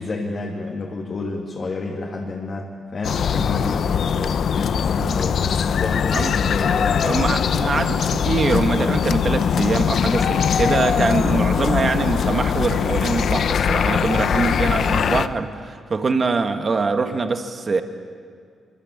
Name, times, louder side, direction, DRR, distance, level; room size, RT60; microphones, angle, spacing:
voice 1, 0.0-2.7 2.9-5.4 5.7-7.1, left 3 dB, 35° left, -2 dB, 2.5 m, -29 dB
sound 1, 3.0-15.3, left 7 dB, 50° left, 0.8 m, -21 dB
voice 2, 7.0-17.8, right 4 dB, 30° right, 7 dB, 1.5 m, -23 dB
25.5 x 24.5 x 8.5 m, 2.1 s
wide cardioid pair, 170°, 0 cm